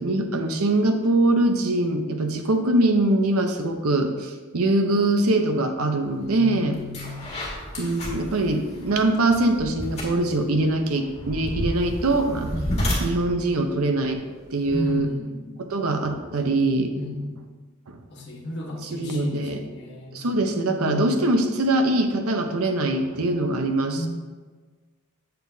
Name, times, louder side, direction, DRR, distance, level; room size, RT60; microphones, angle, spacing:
voice 1, 0.0-6.8 7.8-12.5 13.0-14.2 14.5-15.1 15.6-16.9 17.9-18.0 18.8-19.6 20.1-24.1, right 2 dB, 85° right, 5 dB, 0.8 m, -23 dB
voice 2, 6.2-7.2 12.5-12.7 14.7-15.6 16.9-17.4 18.1-20.2 20.8-21.1 23.9-24.1, left 2 dB, 55° left, -2 dB, 1.4 m, -32 dB
sound 1, 6.2-6.4 6.7-15.0, equal, 30° left, 2.0 m, -32 dB
8.2 x 6.7 x 2.7 m, 1.4 s
head